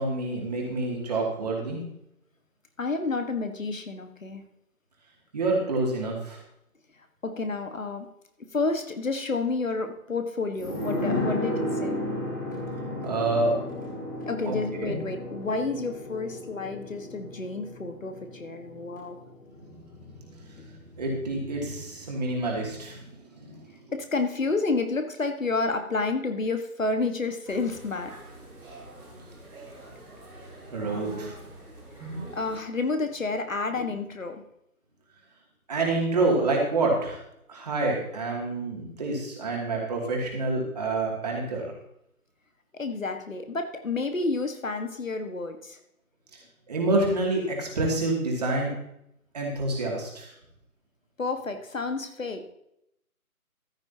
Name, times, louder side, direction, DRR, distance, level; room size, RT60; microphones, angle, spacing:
voice 1, 0.0-1.8 5.3-6.4 13.0-13.5 14.5-15.0 20.0-20.1 20.4-23.7 30.7-31.3 35.7-37.2 37.5-41.7 46.7-48.7 49.3-50.3, right 2 dB, 25° right, -1 dB, 2.5 m, -28 dB
voice 2, 2.8-4.4 7.2-8.1 8.5-12.0 14.3-19.2 20.6-20.7 23.9-28.1 32.0-34.4 42.7-45.8 51.2-52.4, left 3 dB, 60° left, 7 dB, 1.6 m, -30 dB
sound 1, 10.6-19.9 20.2-20.3, left 1 dB, 15° left, 1.2 m, -33 dB
sound 2, 27.4-32.6, right 2 dB, 5° right, 2.3 m, -43 dB
14.5 x 10.5 x 2.9 m, 0.78 s
figure-of-eight pair, 160°, 44 cm